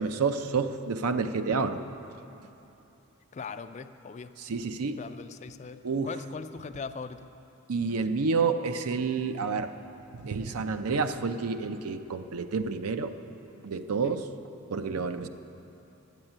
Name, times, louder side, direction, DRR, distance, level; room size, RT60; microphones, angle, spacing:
voice 1, 0.0-1.8 4.4-5.0 5.8-6.1 7.7-9.7 10.2-13.1 13.6-14.2 14.7-15.3, right 4 dB, 90° right, 9 dB, 0.6 m, -29 dB
voice 2, 3.3-4.3 5.0-7.3 14.0-14.2, left 5 dB, 30° left, 11 dB, 0.3 m, -40 dB
11.0 x 8.0 x 8.8 m, 2.9 s
head